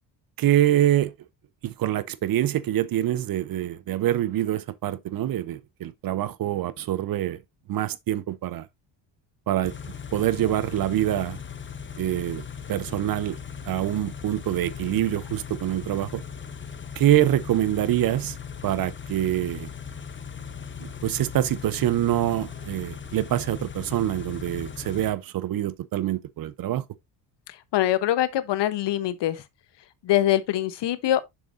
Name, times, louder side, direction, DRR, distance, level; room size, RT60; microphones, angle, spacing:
voice 1, 0.4-1.1 1.6-7.4 7.7-8.7 9.5-9.7 10.1-11.4 12.0-12.4 12.7-13.4 13.7-16.2 17.0-18.4 18.6-19.7 20.8-26.8, right 13 dB, 45° right, 0.6 m, -25 dB
Car / Idling, 9.6-25.1, left 7 dB, 25° left, 1.0 m, -38 dB
voice 2, 27.5-29.4 30.0-31.2, left 13 dB, 55° left, 1.0 m, -24 dB
6.8 x 6.5 x 2.6 m
supercardioid pair, 90°, 49 cm